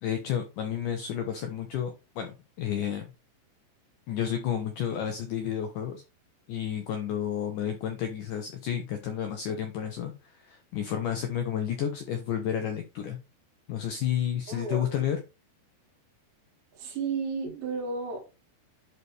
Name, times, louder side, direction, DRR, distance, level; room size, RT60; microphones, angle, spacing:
voice 1, 0.0-3.1 4.1-6.0 6.5-13.2 13.7-15.2, left 9 dB, 85° left, 1.8 m, -31 dB
voice 2, 14.5-15.0 16.7-18.4, right 4 dB, 85° right, 4.5 m, -33 dB
11.5 x 4.1 x 3.3 m
omnidirectional pair, 4.8 m